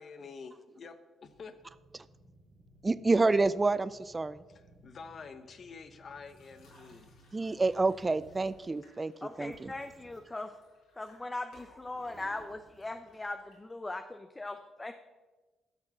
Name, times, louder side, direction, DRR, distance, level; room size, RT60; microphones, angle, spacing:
voice 1, 0.0-1.6 4.5-7.1, left 5 dB, 50° left, 10 dB, 1.0 m, -48 dB
sound 1, 1.2-8.6 9.2-10.6 11.2-11.3 11.6-13.2, right 2 dB, 50° right, 2.6 m, -60 dB
voice 2, 2.8-4.4 7.3-9.7, right 3 dB, 25° right, 16 dB, 0.4 m, -28 dB
sound 2, 6.2-14.0, left 2 dB, 90° left, 4.4 m, -64 dB
voice 3, 9.2-10.5 11.0-14.9, left 2 dB, 20° left, 8 dB, 0.6 m, -40 dB
12.5 x 6.6 x 6.0 m, 1.2 s
cardioid pair, 90°, 0 cm